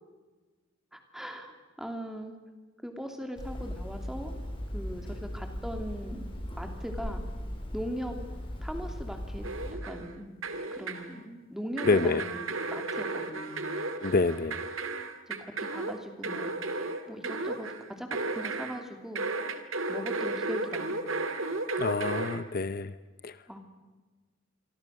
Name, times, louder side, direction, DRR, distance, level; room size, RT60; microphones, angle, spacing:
voice 1, 0.9-1.5 1.8-2.3 2.8-4.3 4.7-6.2 6.6-7.2 7.7-8.2 8.6-9.4 9.8-10.3 10.7-13.7 15.3-19.2 19.9-21.0 23.5-23.6, equal, ahead, 4 dB, 2.9 m, -40 dB
Hammer, 3.4-9.7, equal, 25° left, 5.3 m, -38 dB
sound 1, 9.4-10.1 10.4-11.1 11.8-18.8 19.2-22.4, right 3 dB, 75° right, 2.3 m, -34 dB
voice 2, 11.9-12.2 14.0-14.6 21.8-22.9 23.2-23.3, left 3 dB, 45° left, 13 dB, 0.7 m, -26 dB
27.0 x 24.0 x 6.6 m, 1.3 s
head